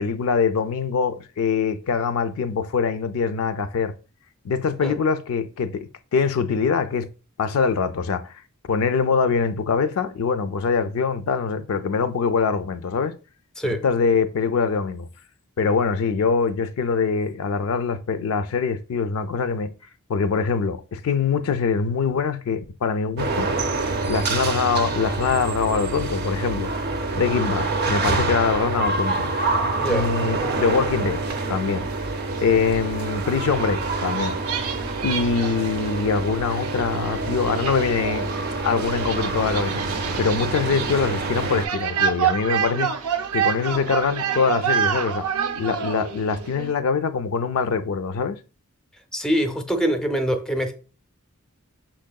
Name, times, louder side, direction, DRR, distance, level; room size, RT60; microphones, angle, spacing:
voice 1, 0.0-3.9 4.4-7.1 7.4-8.3 8.7-13.1 13.6-15.1 15.6-19.7 20.1-23.5 24.0-26.7 27.1-29.3 29.9-31.2 31.5-31.9 32.4-34.4 35.0-42.9 43.3-45.2 45.6-48.4, left 5 dB, 65° left, 0.4 m, -23 dB
sound 1, 23.2-41.6, right 3 dB, 45° right, 0.6 m, -27 dB
sound 2, 29.2-46.7, right 8 dB, 90° right, 0.6 m, -30 dB
voice 2, 29.8-30.1 49.1-50.7, equal, 5° left, 0.5 m, -24 dB
5.8 x 3.7 x 2.3 m
head